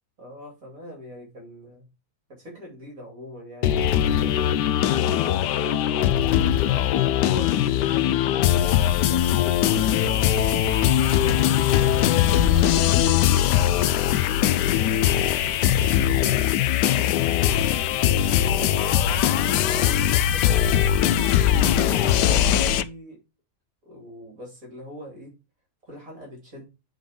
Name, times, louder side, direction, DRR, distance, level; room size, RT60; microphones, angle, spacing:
voice 1, 0.2-1.9 2.3-4.6 5.8-10.4 11.2-14.9 15.4-17.3 17.9-20.8 21.6-23.2 23.8-25.4 25.9-26.7, equal, 55° right, -1 dB, 3.5 m, -42 dB
sound 1, 3.6-22.8, left 11 dB, 85° left, 1.2 m, -21 dB
8.1 x 3.9 x 5.1 m, 0.27 s
omnidirectional pair, 1.8 m